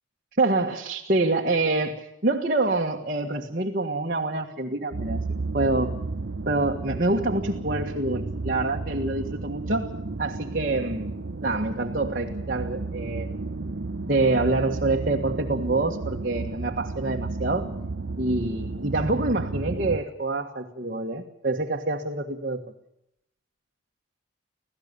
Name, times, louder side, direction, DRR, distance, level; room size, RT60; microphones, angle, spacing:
voice 1, 0.4-5.2 5.5-6.0 6.5-9.9 10.2-11.1 11.4-13.3 14.1-17.7 18.2-22.6, right 2 dB, 45° right, 0 dB, 1.6 m, -26 dB
sound 1, 4.9-20.0, right 3 dB, 60° right, 0.8 m, -33 dB
26.0 x 16.5 x 6.9 m, 0.79 s
head